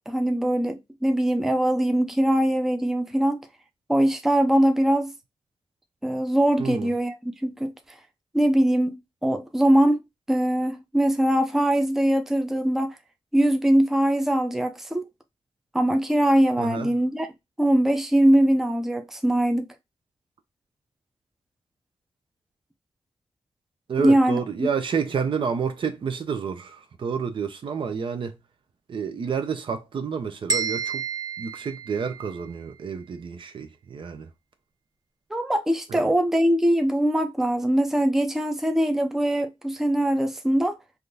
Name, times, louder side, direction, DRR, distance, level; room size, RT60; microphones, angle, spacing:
voice 1, 0.1-3.5 3.9-5.1 6.0-7.1 7.4-7.7 8.3-10.0 10.3-13.0 13.3-15.0 15.7-17.3 17.6-19.7 24.0-24.7 35.3-40.7, right 1 dB, 5° right, 0.4 m, -22 dB
voice 2, 6.6-6.9 16.6-16.9 23.9-28.4 28.9-31.0 31.4-34.3 35.9-36.1, right 6 dB, 60° right, 0.5 m, -29 dB
sound 1, 30.5-32.5, right 5 dB, 40° right, 0.9 m, -30 dB
3.5 x 2.4 x 2.6 m
wide cardioid pair, 100°, 10 cm